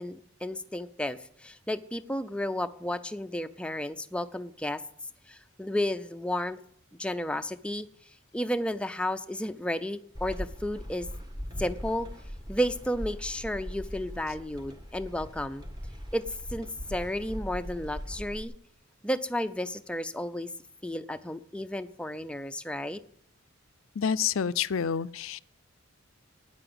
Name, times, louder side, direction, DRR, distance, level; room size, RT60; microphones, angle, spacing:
voice 1, 0.0-4.8 5.3-6.6 7.0-7.9 8.3-11.1 11.6-12.1 12.5-15.6 16.1-18.5 19.0-20.5 20.8-23.0, left 1 dB, 5° left, 0.5 m, -32 dB
sound 1, 10.1-18.4, equal, 20° right, 1.5 m, -40 dB
voice 2, 24.0-25.4, left 7 dB, 80° left, 0.5 m, -28 dB
13.0 x 9.8 x 7.9 m
head